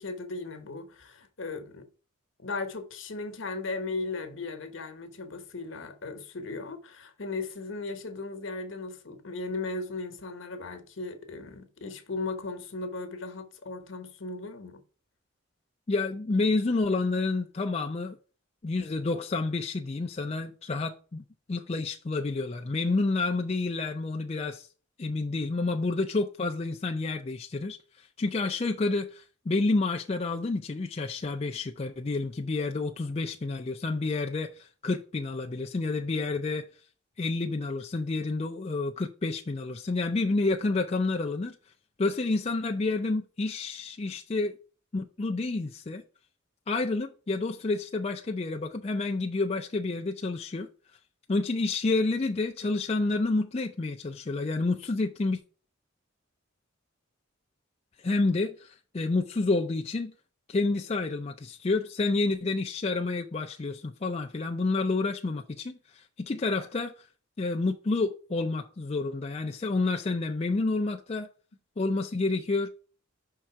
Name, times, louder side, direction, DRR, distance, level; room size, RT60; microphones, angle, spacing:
voice 1, 0.0-1.9 2.4-14.8, left 3 dB, 70° left, 1.1 m, -37 dB
voice 2, 15.9-18.2 18.6-24.7 25.0-36.7 37.2-41.6 42.0-44.6 44.9-46.0 46.7-50.7 51.3-55.4 58.0-60.1 60.5-67.1 67.4-71.3 71.8-72.7, left 3 dB, 30° left, 0.4 m, -29 dB
5.6 x 3.7 x 5.8 m
head